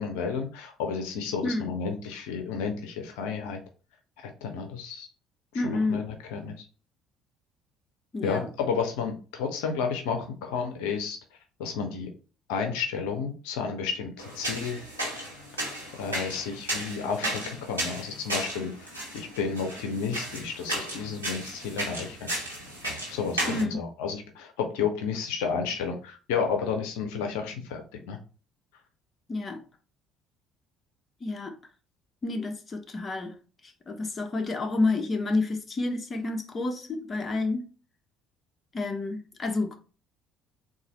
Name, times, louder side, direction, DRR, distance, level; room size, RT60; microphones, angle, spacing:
voice 1, 0.0-3.6 4.2-5.1 5.5-6.6 8.2-11.2 11.6-12.1 12.5-14.8 16.0-22.3 23.1-28.2, left 6 dB, 70° left, 0.6 m, -32 dB
voice 2, 1.4-1.7 5.5-6.1 8.1-8.5 23.5-23.8 29.3-29.6 31.2-31.6 32.2-33.4 33.6-37.7 38.7-39.8, left 3 dB, 30° left, 0.7 m, -29 dB
sound 1, 14.2-23.6, right 1 dB, 90° right, 1.2 m, -34 dB
4.0 x 2.6 x 4.1 m
figure-of-eight pair, 55°, 0 cm